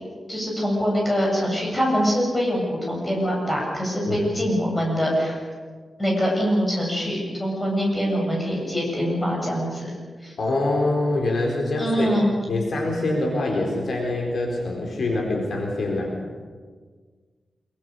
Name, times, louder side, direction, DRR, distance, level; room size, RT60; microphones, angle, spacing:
voice 1, 0.3-5.4 6.0-9.9 10.2-10.3 11.8-12.3, equal, 15° left, -2 dB, 7.8 m, -24 dB
voice 2, 10.4-12.2 12.5-16.2, left 2 dB, 60° left, 0 dB, 4.1 m, -25 dB
25.5 x 23.0 x 6.8 m, 1.5 s
wide cardioid pair, 165°, 0 cm